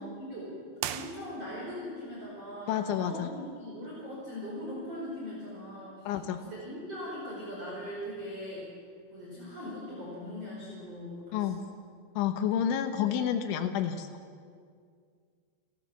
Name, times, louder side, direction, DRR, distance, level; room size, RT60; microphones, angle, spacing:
voice 1, 0.0-6.1 6.4-8.7 9.1-11.6, equal, 35° right, -6 dB, 5.6 m, -40 dB
sound 1, 0.8-1.8, right 11 dB, 75° right, 2.8 m, -38 dB
voice 2, 2.7-3.3 6.1-6.4 11.3-11.6 12.2-14.1, left 9 dB, 90° left, 6 dB, 3.5 m, -29 dB
29.5 x 14.5 x 7.2 m, 2.1 s
omnidirectional pair, 5.2 m